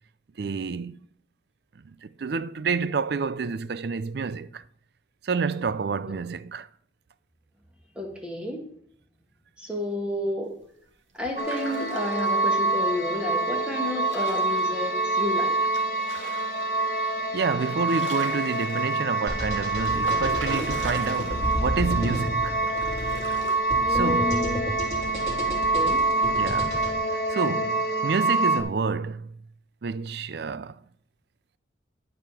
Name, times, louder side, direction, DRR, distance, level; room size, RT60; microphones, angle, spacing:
voice 1, 0.4-1.0 1.9-4.6 5.2-6.7 17.3-22.6 23.9-24.5 26.4-26.8 27.3-29.3 29.8-30.8, right 5 dB, 55° right, 0.4 m, -29 dB
voice 2, 8.0-8.6 9.6-10.5 11.2-15.5 23.8-24.8 25.5-26.0, left 1 dB, 5° right, 1.8 m, -31 dB
sound 1, 11.2-12.6 13.8-14.9 15.7-16.8 17.2-17.3 17.6-19.1 19.8-21.7 22.0-22.1 22.7-23.6, right 3 dB, 80° right, 2.0 m, -39 dB
sound 2, 11.4-28.6, right 3 dB, 50° left, 1.3 m, -26 dB
sound 3, 19.3-26.9, equal, 35° right, 3.4 m, -32 dB
12.5 x 5.0 x 5.7 m
head